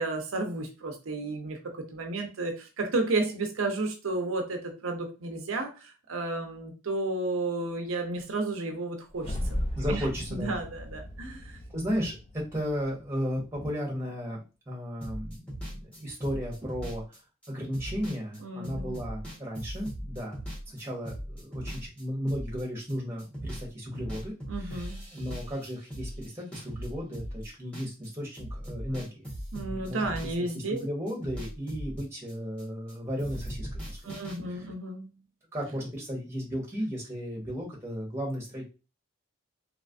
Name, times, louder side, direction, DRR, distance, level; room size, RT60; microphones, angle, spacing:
voice 1, 0.0-11.6 18.4-19.0 24.5-25.0 29.5-30.9 34.0-35.2, right 2 dB, 70° right, 0.6 m, -32 dB
sound 1, 9.1-13.5, left 1 dB, 25° left, 0.4 m, -36 dB
voice 2, 9.7-10.5 11.7-14.4 14.7-17.0 17.5-20.4 20.7-29.3 29.6-34.7 35.5-38.7, equal, 10° right, 1.1 m, -35 dB
sound 2, 15.0-22.9 23.2-23.7 23.9-28.1 28.3-32.9 33.2-34.4, equal, 5° left, 1.3 m, -39 dB
3.2 x 3.0 x 2.5 m
head